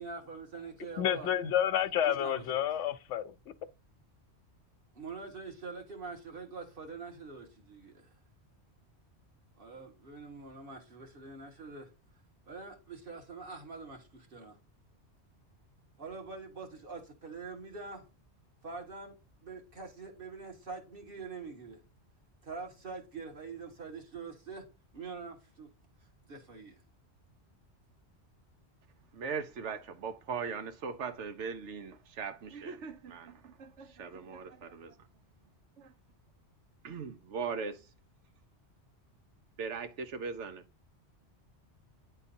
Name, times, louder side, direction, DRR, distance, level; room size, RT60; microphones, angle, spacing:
voice 1, 0.0-1.3 2.1-2.6 4.9-8.1 9.6-11.9 12.5-14.6 16.0-18.1 18.6-19.2 19.4-21.8 22.4-24.7 24.9-25.7 26.3-26.8, right 4 dB, 55° right, 1.8 m, -44 dB
voice 2, 1.0-3.3, left 10 dB, 85° left, 0.9 m, -29 dB
voice 3, 29.1-35.1 35.8-35.9 36.8-37.9 39.6-40.6, right 5 dB, 85° right, 1.1 m, -39 dB
9.8 x 3.8 x 2.7 m
omnidirectional pair, 1.2 m